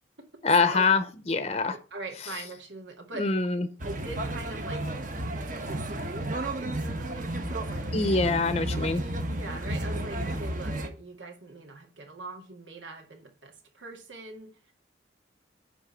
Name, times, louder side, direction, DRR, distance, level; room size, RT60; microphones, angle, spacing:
voice 1, 0.4-1.8 3.1-3.7 7.9-9.0, left 4 dB, 35° left, 0.7 m, -24 dB
voice 2, 1.7-3.3 3.8-4.9 5.5-7.9 9.3-14.5, right 3 dB, 85° right, 2.1 m, -42 dB
sound 1, 3.8-10.9, right 1 dB, 45° right, 1.3 m, -32 dB
10.0 x 3.6 x 7.1 m
head